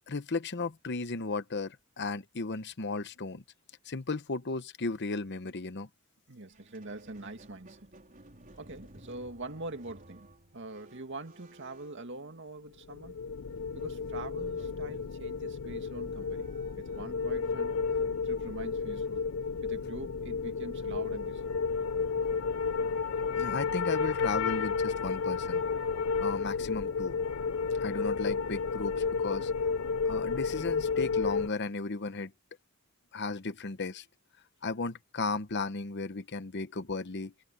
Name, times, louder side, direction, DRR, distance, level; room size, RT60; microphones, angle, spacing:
voice 1, 0.1-3.4 3.8-5.9 23.4-25.6 26.2-27.1 27.7-29.5 30.0-32.3 33.1-34.0 34.6-37.3, left 3 dB, 55° left, 1.0 m, -35 dB
voice 2, 6.3-7.9 8.6-10.3 10.5-13.2 13.7-16.5 16.8-17.9 18.2-19.3 19.6-21.5, right 2 dB, 60° right, 2.3 m, -44 dB
Squeak, 6.5-12.8 13.8-19.0, right 1 dB, 40° right, 4.4 m, -57 dB
sound 1, 12.9-31.5, left 5 dB, 75° left, 0.6 m, -32 dB
head